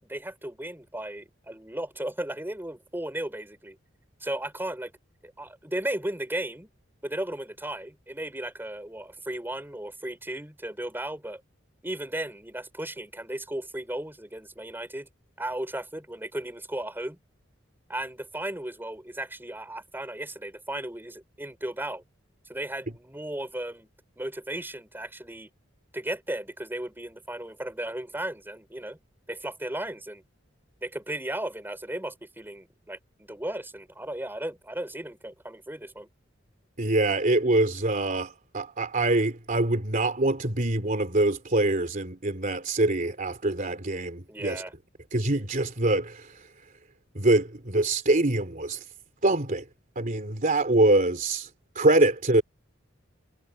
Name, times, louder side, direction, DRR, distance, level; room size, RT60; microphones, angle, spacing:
voice 1, 0.1-3.8 4.2-4.9 5.2-6.7 7.0-11.4 11.8-15.1 15.4-17.2 17.9-22.0 22.5-23.9 24.2-25.5 25.9-29.0 29.3-30.2 30.8-36.1 44.3-44.7, right 1 dB, 10° right, 4.8 m, -35 dB
voice 2, 36.8-44.6 45.1-46.3 47.1-48.8 49.2-49.6 49.9-51.5 51.7-52.4, right 2 dB, 45° right, 3.1 m, -24 dB
head